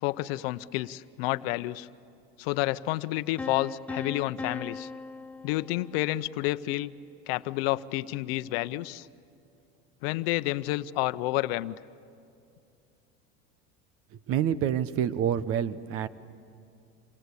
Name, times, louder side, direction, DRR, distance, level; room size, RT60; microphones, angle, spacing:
voice 1, 0.0-1.9 2.4-4.9 5.4-6.9 7.3-9.1 10.0-11.8, left 17 dB, 80° left, 14 dB, 0.8 m, -30 dB
sound 1, 3.4-6.3, left 4 dB, 5° left, 0.7 m, -39 dB
voice 2, 14.3-16.1, right 9 dB, 50° right, 16 dB, 1.0 m, -27 dB
28.0 x 25.5 x 8.3 m, 2.5 s
supercardioid pair, 125°, 29 cm